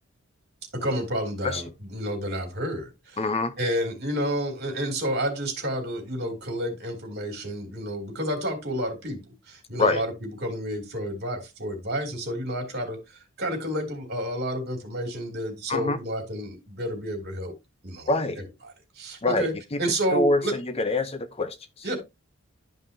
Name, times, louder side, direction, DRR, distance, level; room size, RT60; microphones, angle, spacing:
voice 1, 0.7-3.2 3.6-9.2 9.5-17.5 17.8-18.1 18.9-19.5 19.8-20.5 21.8-22.0, equal, 55° right, 3.1 m, -30 dB
voice 2, 3.2-3.5 9.8-10.0 15.7-16.0 18.1-18.4 19.2-19.8 20.1-21.9, left 3 dB, 30° left, 0.7 m, -25 dB
12.0 x 5.4 x 2.8 m
head